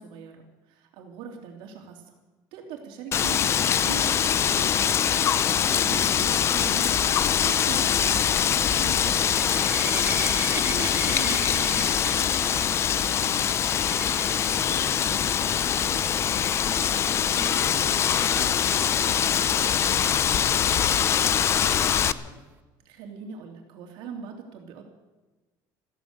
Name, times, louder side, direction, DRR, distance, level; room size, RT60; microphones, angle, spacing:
voice 1, 0.0-2.1 2.5-6.9 7.2-12.2 17.2-17.5 22.8-24.8, right 6 dB, 70° right, 2 dB, 3.3 m, -41 dB
Wind, 3.1-22.1, left 9 dB, 30° left, 0.5 m, -23 dB
sound 1, 7.4-14.5 15.1-15.4 15.7-15.8 16.2-16.3 19.9-20.0, right 5 dB, 20° right, 1.0 m, -38 dB
sound 2, 10.8-20.7, right 5 dB, 5° left, 6.6 m, -49 dB
voice 2, 13.7-22.4, left 2 dB, 50° left, 4 dB, 4.5 m, -45 dB
14.5 x 14.5 x 6.8 m, 1.2 s
cardioid pair, 160°, 9 cm